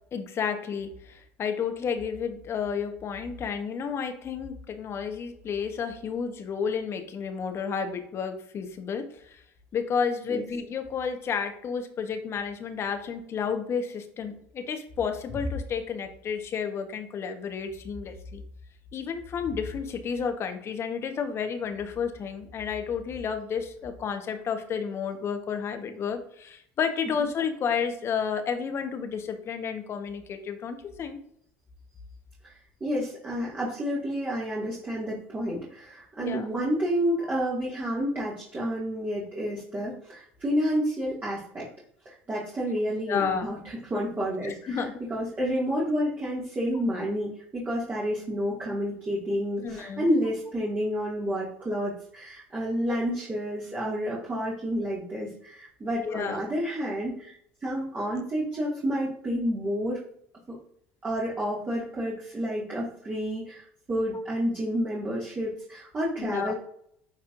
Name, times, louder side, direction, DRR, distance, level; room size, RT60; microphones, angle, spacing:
voice 1, 0.1-9.4 9.7-18.4 18.9-31.2 36.2-36.5 43.1-43.5 44.4-45.0 49.6-50.1 56.0-56.4 66.2-66.5, left 6 dB, 40° left, 7 dB, 1.1 m, -31 dB
voice 2, 32.8-41.7 42.1-60.0 60.5-60.6 61.0-66.5, equal, 25° right, -5 dB, 2.1 m, -30 dB
9.1 x 4.2 x 2.6 m, 0.69 s
hypercardioid pair, 75°, 6 cm